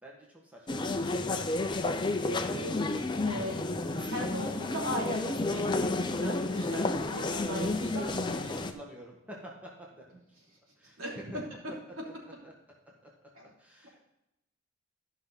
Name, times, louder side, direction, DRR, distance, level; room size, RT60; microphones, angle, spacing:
voice 1, 0.0-1.2 8.5-10.2 10.8-11.0 11.7-11.8 12.4-12.5 13.6-14.0, right 1 dB, 5° right, -3 dB, 1.5 m, -49 dB
sound 1, 0.7-8.7, left 2 dB, 20° left, 0.6 m, -31 dB
voice 2, 2.2-2.8 3.2-3.5 3.8-8.5 11.0-11.3 13.3-13.5, equal, 70° right, -3 dB, 3.1 m, -39 dB
13.0 x 5.8 x 4.1 m, 0.90 s
head